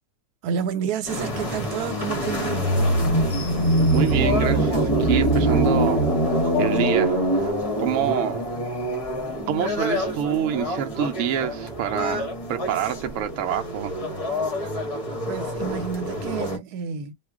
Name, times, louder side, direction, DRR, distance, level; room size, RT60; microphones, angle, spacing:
voice 1, 0.4-2.7 15.3-17.1, right 7 dB, 85° right, 1.2 m, -30 dB
sound 1, 1.1-16.6, right 1 dB, 30° left, 0.6 m, -24 dB
voice 2, 3.9-6.0 6.6-7.5 7.8-8.4 9.4-13.9, right 9 dB, 65° right, 0.8 m, -27 dB
2.4 x 2.3 x 3.5 m
omnidirectional pair, 1.6 m